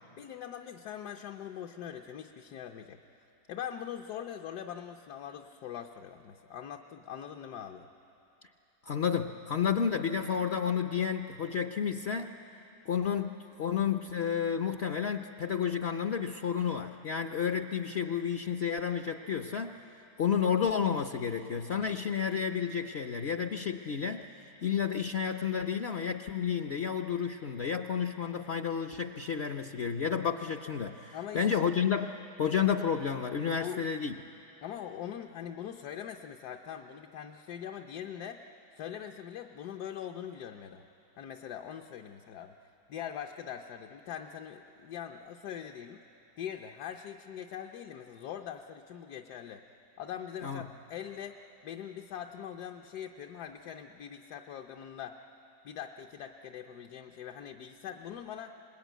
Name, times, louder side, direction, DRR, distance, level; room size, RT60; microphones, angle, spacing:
voice 1, 0.2-3.0 3.5-7.9 31.1-31.5 33.5-33.8 34.6-38.4 38.7-40.8 41.2-42.5 42.9-46.0 46.4-49.6 50.0-51.4 51.6-55.1 55.6-58.5, left 9 dB, 75° left, 3 dB, 1.3 m, -42 dB
voice 2, 8.9-12.3 12.9-19.8 20.2-24.3 24.6-34.2 50.4-50.6, left 7 dB, 55° left, 6 dB, 0.7 m, -31 dB
26.0 x 20.5 x 9.2 m, 2.9 s
omnidirectional pair, 1.7 m